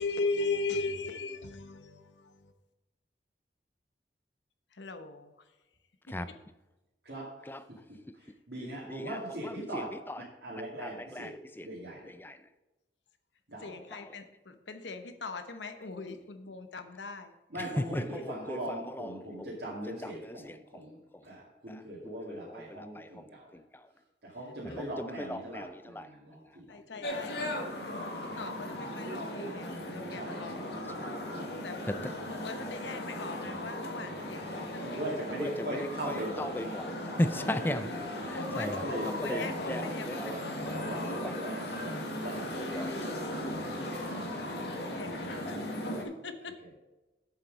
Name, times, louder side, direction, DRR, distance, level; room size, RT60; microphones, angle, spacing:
voice 1, 0.0-2.0 4.8-5.3 13.6-17.3 24.7-24.8 26.7-27.6 27.8-28.1 28.4-30.9 31.6-35.0 35.3-35.4 38.3-41.1 44.6-45.5 46.0-46.5, left 3 dB, 80° left, 1.0 m, -39 dB
voice 2, 8.5-9.9 10.4-11.3 11.6-12.1 13.5-13.8 17.5-23.5 24.2-26.8 30.1-30.8 34.4-34.6 34.8-36.9 38.2-38.3 38.6-41.9 42.2-42.7 44.0-44.2 44.7-45.2 46.6-46.7, right 1 dB, 65° right, 2.3 m, -40 dB
voice 3, 9.0-10.2 10.8-11.3 11.6-11.7 12.0-12.3 17.6-19.8 20.0-20.6 22.0-23.1 24.6-26.1 31.0-31.1 31.9-32.0 35.4-37.9 38.3-40.8 41.1-41.3 42.5-43.2, left 1 dB, 10° left, 0.4 m, -37 dB
sound 1, 27.0-46.0, left 1 dB, 65° left, 1.8 m, -37 dB
7.7 x 7.3 x 5.2 m
head